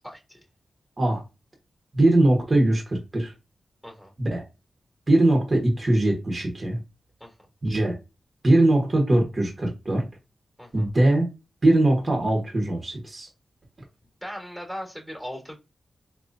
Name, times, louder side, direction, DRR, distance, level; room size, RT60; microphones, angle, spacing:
voice 1, 0.0-0.4 3.8-4.1 7.2-7.3 10.6-10.9 14.2-15.5, equal, 5° right, 1.4 m, -38 dB
voice 2, 1.9-3.3 4.2-4.4 5.1-6.8 7.6-7.9 8.4-10.1 10.7-11.3 11.6-13.3, right 1 dB, 35° right, 1.1 m, -21 dB
3.9 x 2.9 x 2.6 m
wide cardioid pair, 90°, 0 cm